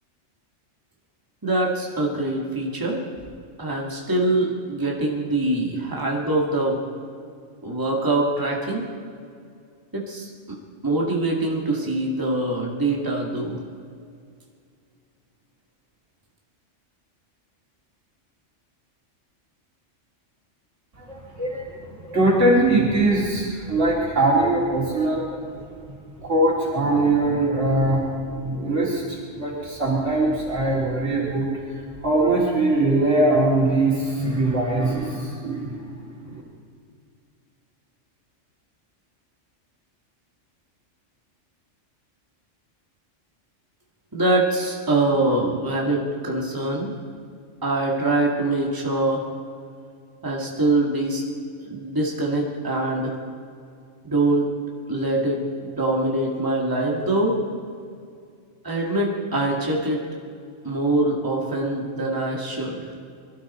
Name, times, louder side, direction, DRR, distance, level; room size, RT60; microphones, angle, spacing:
voice 1, 1.4-3.0 3.6-6.8 7.6-8.9 9.9-10.3 10.8-13.6 44.1-46.9 47.6-49.2 50.2-51.2 51.6-53.2 54.0-54.5 54.9-57.4 58.6-60.0 60.6-62.9, right 2 dB, 15° right, -2 dB, 2.0 m, -24 dB
voice 2, 21.0-25.5 26.2-31.6 32.0-36.4, right 2 dB, 75° right, -5 dB, 3.1 m, -22 dB
24.0 x 13.0 x 4.3 m, 2.3 s
omnidirectional pair, 1.3 m